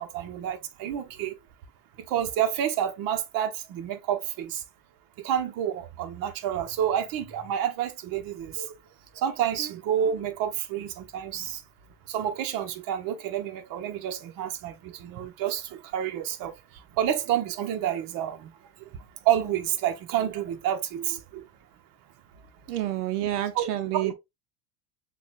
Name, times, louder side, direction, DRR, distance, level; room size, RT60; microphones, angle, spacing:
voice 1, 0.0-1.4 2.1-4.6 5.2-8.7 9.1-11.6 12.1-16.5 17.0-18.5 19.2-21.5 23.5-24.1, right 10 dB, 50° right, 0.9 m, -29 dB
voice 2, 22.7-24.1, right 13 dB, 80° right, 0.7 m, -29 dB
7.0 x 2.4 x 2.4 m
supercardioid pair, 105°, 45 cm